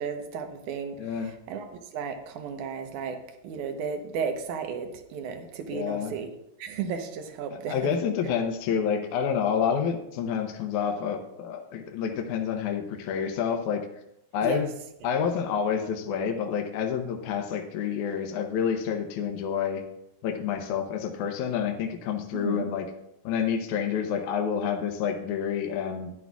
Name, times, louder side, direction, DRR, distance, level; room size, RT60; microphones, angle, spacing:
voice 1, 0.0-6.3 6.6-7.9 14.4-14.6 22.3-22.7, right 6 dB, 70° right, 6 dB, 2.3 m, -34 dB
voice 2, 1.0-1.3 5.7-6.1 7.7-13.8 14.3-14.7 15.0-19.8 20.2-22.9 23.2-26.1, left 7 dB, 70° left, 3 dB, 2.1 m, -28 dB
13.5 x 10.5 x 2.4 m, 0.81 s
omnidirectional pair, 3.8 m